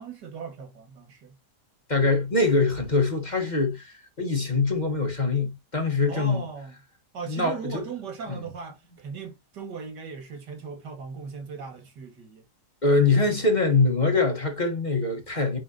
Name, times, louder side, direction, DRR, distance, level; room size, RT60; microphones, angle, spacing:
voice 1, 0.0-1.4 6.1-6.8 7.1-12.4, right 5 dB, 85° right, 2.4 m, -38 dB
voice 2, 1.9-6.4 7.3-7.8 12.8-15.6, left 3 dB, 25° left, 1.4 m, -23 dB
9.2 x 3.8 x 2.8 m
omnidirectional pair, 1.8 m